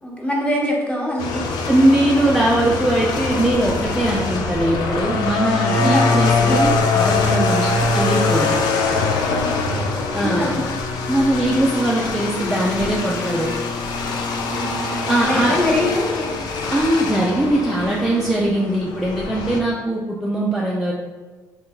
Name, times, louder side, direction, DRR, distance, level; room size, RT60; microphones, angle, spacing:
voice 1, 0.0-1.5 5.6-6.6 9.3-10.6 14.4-16.4, left 1 dB, 15° left, -2 dB, 0.9 m, -24 dB
sound 1, 1.2-19.6, left 3 dB, 70° left, 0.4 m, -23 dB
voice 2, 1.7-8.6 10.1-10.5 11.1-13.5 15.1-15.5 16.7-20.9, right 1 dB, 5° right, -4 dB, 0.4 m, -20 dB
2.6 x 2.2 x 3.7 m, 1.3 s
supercardioid pair, 70°, 7 cm